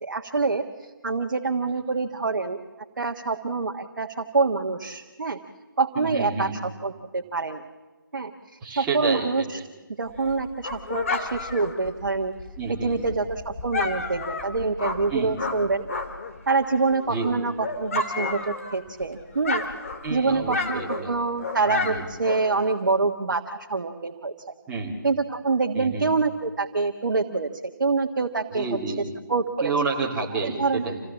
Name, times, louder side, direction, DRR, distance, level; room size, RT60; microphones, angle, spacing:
voice 1, 0.0-2.6 3.0-5.4 5.8-7.7 8.1-9.6 10.0-12.3 12.8-15.9 16.5-19.6 20.1-24.5 25.0-27.5 27.8-28.7 29.3-29.7 30.4-30.9, right 4 dB, 60° right, 3 dB, 1.6 m, -26 dB
voice 2, 6.0-6.5 8.6-9.3 12.6-13.0 15.1-15.3 17.1-17.3 20.0-21.1 21.7-22.0 24.7-24.9 25.7-26.0 28.5-29.1 29.6-31.0, right 4 dB, 10° right, -5 dB, 3.1 m, -29 dB
Dog, 10.1-16.4 16.7-19.0 19.3-22.7, left 3 dB, 40° left, 2.7 m, -31 dB
27.5 x 17.0 x 7.3 m, 1.2 s
figure-of-eight pair, 155°, 11 cm